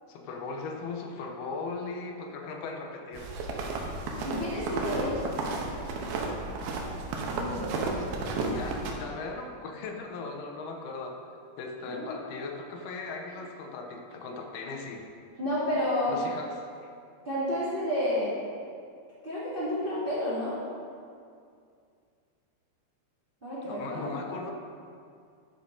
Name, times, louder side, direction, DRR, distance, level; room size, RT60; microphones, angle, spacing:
voice 1, 0.1-3.3 8.5-11.1 11.6-15.0 16.1-16.5 16.8-16.9 23.7-24.5, left 4 dB, 80° left, 2 dB, 2.7 m, -38 dB
sound 1, 3.1-8.9, right 3 dB, 80° right, 2.8 m, -33 dB
voice 2, 4.2-5.2 7.3-7.9 11.8-12.1 15.4-16.2 17.2-18.3 19.2-20.6 23.4-24.2, left 1 dB, 20° right, -10 dB, 1.6 m, -30 dB
11.5 x 5.7 x 5.1 m, 2.3 s
omnidirectional pair, 4.5 m